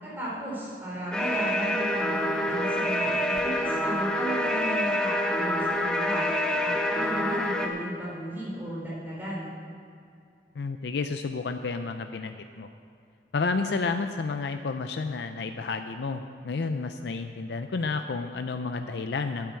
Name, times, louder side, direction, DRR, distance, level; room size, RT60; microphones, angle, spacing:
voice 1, 0.0-6.2 6.6-9.5, right 1 dB, 10° right, -7 dB, 3.7 m, -35 dB
sound 1, 1.1-7.7, left 1 dB, 5° left, 0.8 m, -27 dB
voice 2, 10.6-12.7 13.3-19.6, left 4 dB, 65° left, 7 dB, 0.4 m, -31 dB
9.4 x 8.3 x 8.3 m, 2.4 s
head